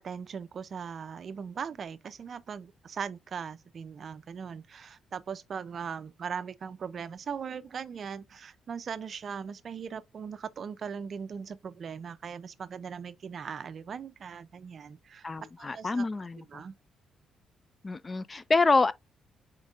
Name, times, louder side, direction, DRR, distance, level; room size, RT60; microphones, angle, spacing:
voice 1, 0.0-15.3 15.6-16.1 16.5-16.7, right 6 dB, 50° right, 0.4 m, -39 dB
voice 2, 15.2-16.6 17.8-18.9, left 3 dB, 25° left, 0.3 m, -27 dB
5.1 x 4.4 x 2.4 m
cardioid pair, 90°, 0 cm